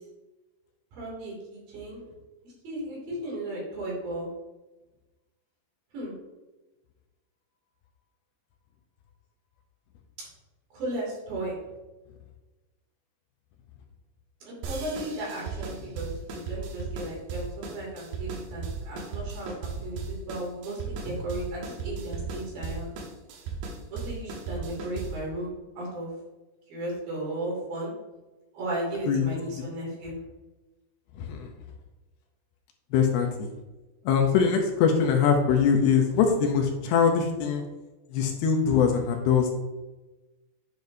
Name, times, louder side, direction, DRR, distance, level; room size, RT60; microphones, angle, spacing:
voice 1, 0.9-2.0 2.4-4.3 5.9-6.1 10.7-11.6 14.4-22.9 23.9-26.1 26.7-27.9 28.5-30.1, right 1 dB, 60° right, -4 dB, 4.3 m, -35 dB
sound 1, 14.6-25.3, right 4 dB, 85° right, 3.2 m, -36 dB
voice 2, 31.2-31.5 32.9-33.5 34.1-37.6 38.1-39.5, left 6 dB, 75° left, 3 dB, 2.6 m, -22 dB
9.4 x 7.1 x 2.7 m, 1.1 s
omnidirectional pair, 4.8 m